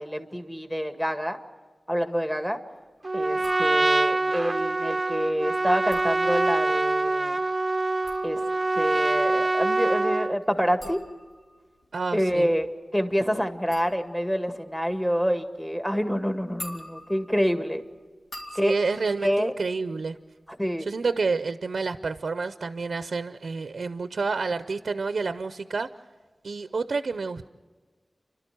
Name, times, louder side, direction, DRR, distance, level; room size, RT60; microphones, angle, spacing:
voice 1, 0.0-1.4 1.9-2.6 3.1-7.4 8.2-8.5 8.8-11.0 12.1-17.8 18.5-18.7 19.2-19.5 20.6-20.9, equal, 10° left, 7 dB, 1.9 m, -27 dB
Trumpet, 3.0-10.4, right 2 dB, 40° right, 0.6 m, -25 dB
sound 1, 3.4-4.2 5.7-6.8 7.8-20.5 20.8-21.3, left 1 dB, 85° left, 4.1 m, -46 dB
voice 2, 11.9-12.5 18.5-20.2 20.8-25.9 26.4-27.5, right 4 dB, 85° right, 11 dB, 0.6 m, -29 dB
29.5 x 12.5 x 9.2 m, 1.4 s
wide cardioid pair, 50°, 0 cm